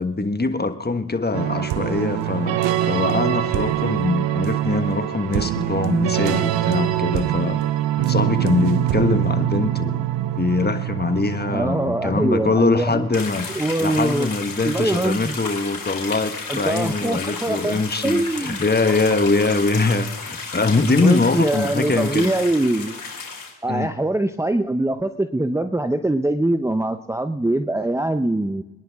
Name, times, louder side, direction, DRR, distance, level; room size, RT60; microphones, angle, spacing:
voice 1, 0.0-7.6 7.9-10.0 10.4-13.5 13.8-22.3 23.7-23.9, left 3 dB, 20° left, 8 dB, 1.4 m, -22 dB
sound 1, 1.3-13.9, right 13 dB, 80° right, 0.9 m, -24 dB
voice 2, 11.5-13.1 13.5-14.3 14.6-15.4 16.5-18.6 21.0-23.0 23.6-28.6, right 1 dB, 5° right, 7 dB, 0.8 m, -23 dB
sound 2, 13.1-23.5, left 4 dB, 45° left, 4.7 m, -33 dB
24.0 x 10.5 x 3.6 m, 0.98 s
supercardioid pair, 55°, 44 cm